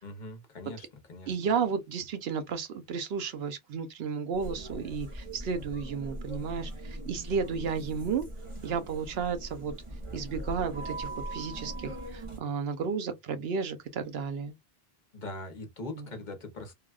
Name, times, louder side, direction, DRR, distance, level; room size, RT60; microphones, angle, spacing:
voice 1, 0.0-1.4 15.1-16.7, left 2 dB, 50° left, 0.9 m, -41 dB
voice 2, 1.3-8.2 8.6-9.7 10.1-14.5 16.0-16.1, right 6 dB, 75° right, 0.9 m, -33 dB
sound 1, 4.3-12.4, right 1 dB, 35° right, 0.9 m, -40 dB
3.3 x 2.3 x 2.3 m
omnidirectional pair, 1.0 m